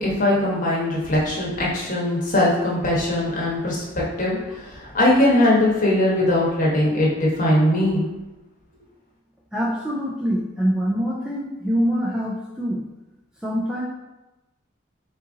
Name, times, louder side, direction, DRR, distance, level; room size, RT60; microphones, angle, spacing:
voice 1, 0.0-8.1, left 1 dB, 40° left, -4 dB, 1.0 m, -20 dB
voice 2, 9.5-12.8 13.4-13.8, equal, 5° right, -5 dB, 0.4 m, -24 dB
4.0 x 2.5 x 3.7 m, 1.0 s
head